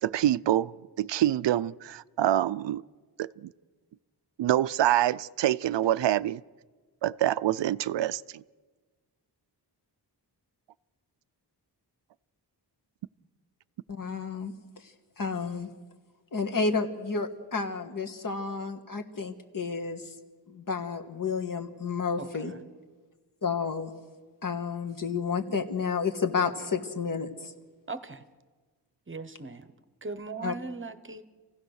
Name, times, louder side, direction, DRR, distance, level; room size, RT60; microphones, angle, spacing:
voice 1, 0.0-2.8 3.2-3.5 4.4-6.4 7.0-8.4, right 12 dB, 90° right, 0.5 m, -26 dB
voice 2, 13.9-15.7 16.3-20.2 20.5-22.5 23.4-23.9 24.4-27.5 30.4-30.5, left 5 dB, 50° left, 1.6 m, -31 dB
voice 3, 27.9-28.2 29.1-29.7 30.0-31.2, right 3 dB, 30° right, 0.9 m, -38 dB
28.0 x 16.0 x 6.4 m
wide cardioid pair, 145°, 42 cm